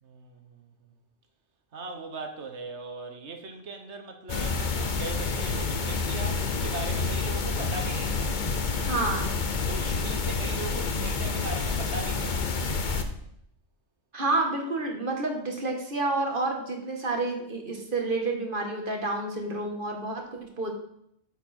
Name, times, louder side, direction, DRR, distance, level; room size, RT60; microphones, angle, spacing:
voice 1, 0.0-0.7 1.7-8.4 9.7-12.5, right 3 dB, 70° right, 5 dB, 1.5 m, -39 dB
sound 1, 4.3-13.0, left 4 dB, 45° left, 0.9 m, -28 dB
voice 2, 8.8-9.3 14.1-20.7, right 2 dB, 45° right, 2 dB, 1.8 m, -29 dB
9.5 x 7.3 x 4.4 m, 0.73 s
omnidirectional pair, 1.2 m